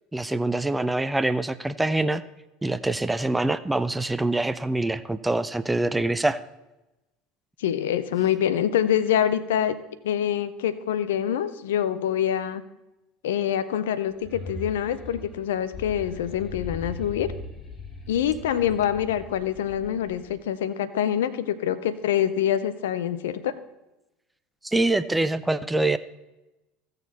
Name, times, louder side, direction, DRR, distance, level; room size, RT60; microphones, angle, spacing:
voice 1, 0.1-2.2 2.6-6.4 24.6-26.0, right 2 dB, 10° right, 13 dB, 0.5 m, -25 dB
voice 2, 7.6-9.8 10.0-12.6 13.2-17.3 18.1-23.5, left 10 dB, 70° left, 14 dB, 0.6 m, -25 dB
sound 1, 14.1-20.4, left 3 dB, 25° left, 1.9 m, -40 dB
15.5 x 6.6 x 4.1 m, 1.0 s
figure-of-eight pair, 70°, 0 cm